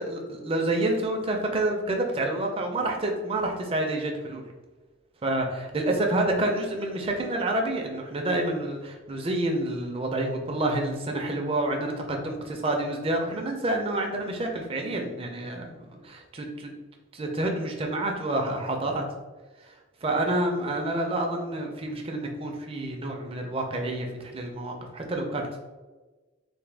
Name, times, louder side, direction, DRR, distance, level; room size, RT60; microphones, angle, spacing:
voice 1, 0.0-4.4 5.2-16.7 17.1-19.0 20.0-25.6, right 1 dB, 25° right, 2 dB, 0.4 m, -28 dB
3.3 x 2.2 x 3.3 m, 1.2 s
head